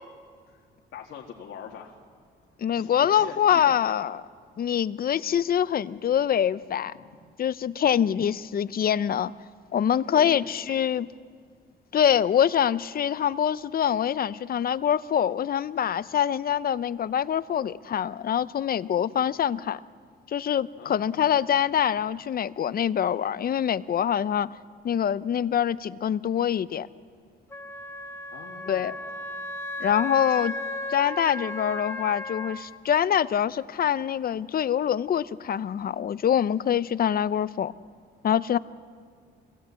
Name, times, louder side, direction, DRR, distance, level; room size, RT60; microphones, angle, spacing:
voice 1, 0.9-1.9 2.7-3.9 6.9-7.2 9.9-10.8 20.8-21.4 28.3-29.4 30.3-30.5, left 7 dB, 75° left, 0 dB, 1.9 m, -43 dB
voice 2, 2.6-4.2 4.6-6.9 7.4-9.3 9.7-11.1 11.9-19.8 20.3-24.5 24.8-26.9 28.7-28.9 29.8-30.6 30.9-37.7 38.2-38.6, left 9 dB, 50° left, 16 dB, 0.7 m, -25 dB
Wind instrument woodwind instrument, 27.5-32.6, left 2 dB, 10° left, 2.7 m, -35 dB
25.5 x 17.5 x 8.3 m, 2.1 s
cardioid pair, 90°, 20 cm